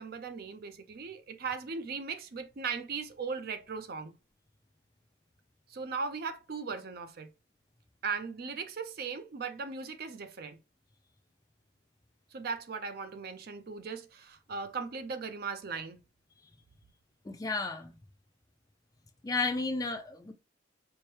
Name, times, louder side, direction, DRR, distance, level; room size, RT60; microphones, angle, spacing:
voice 1, 0.0-4.2 5.7-7.3 8.0-10.6 12.3-16.0, right 5 dB, 50° right, 0.4 m, -38 dB
voice 2, 17.3-17.9 19.2-20.3, left 3 dB, 20° left, 0.3 m, -32 dB
4.4 x 2.1 x 3.1 m
head